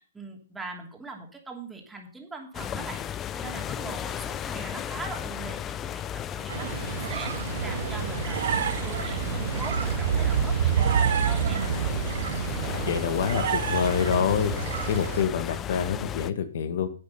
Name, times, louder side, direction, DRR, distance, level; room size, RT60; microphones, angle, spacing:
voice 1, 0.0-6.0 6.3-11.7, right 3 dB, 5° right, 1 dB, 2.8 m, -41 dB
sound 1, 2.5-16.3, left 9 dB, 20° left, 0.5 m, -35 dB
sound 2, 6.5-15.2, right 8 dB, 65° right, 1.7 m, -28 dB
voice 2, 12.8-14.5 14.9-16.9, left 7 dB, 60° left, 10 dB, 1.5 m, -26 dB
10.5 x 8.5 x 5.7 m, 0.43 s
hypercardioid pair, 145°, 0 cm